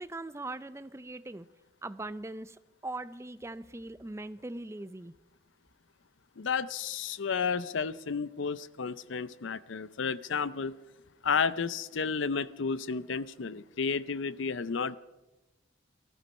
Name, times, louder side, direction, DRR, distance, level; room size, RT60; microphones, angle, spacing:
voice 1, 0.0-1.5 1.8-5.1, right 2 dB, 15° right, 14 dB, 0.4 m, -41 dB
voice 2, 6.4-10.7 11.2-15.0, left 5 dB, 70° left, 16 dB, 0.6 m, -32 dB
18.5 x 13.5 x 5.4 m, 1.0 s
head